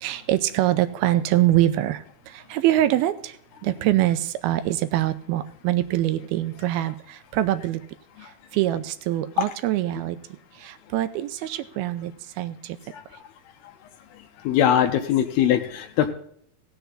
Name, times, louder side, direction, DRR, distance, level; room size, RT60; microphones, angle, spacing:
voice 1, 0.0-3.4 3.6-7.8 8.2-10.2 10.6-12.8, right 14 dB, 85° right, 11 dB, 2.6 m, -24 dB
voice 2, 14.5-16.1, left 10 dB, 90° left, 4 dB, 2.8 m, -21 dB
17.0 x 6.9 x 3.9 m, 0.64 s
omnidirectional pair, 4.4 m